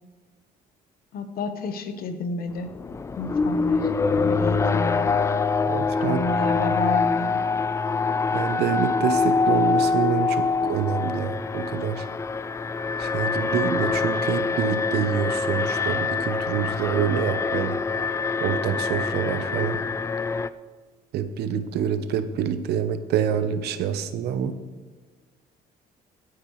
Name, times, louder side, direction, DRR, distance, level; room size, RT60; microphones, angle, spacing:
voice 1, 1.1-2.7 3.2-5.1 6.0-7.4, left 3 dB, 60° left, 9 dB, 1.0 m, -30 dB
Alarm, 2.6-20.5, left 4 dB, 15° left, 0.3 m, -25 dB
voice 2, 5.6-6.2 8.3-12.1 13.0-17.8 18.4-19.8 21.1-24.6, right 8 dB, 75° right, 11 dB, 0.8 m, -26 dB
16.0 x 9.5 x 3.1 m, 1.4 s
cardioid pair, 110°, 17 cm